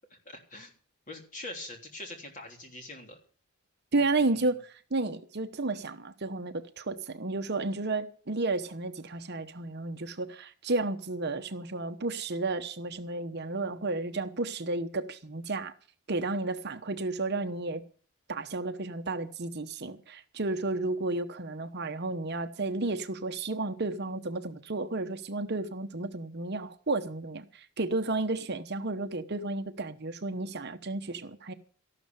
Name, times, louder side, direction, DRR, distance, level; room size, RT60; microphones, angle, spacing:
voice 1, 0.2-0.7 1.1-3.2 4.0-4.5, left 2 dB, 35° left, 3.4 m, -44 dB
voice 2, 3.9-15.7 16.1-17.8 18.3-31.5, right 2 dB, 50° right, 1.0 m, -32 dB
13.5 x 12.0 x 7.0 m
head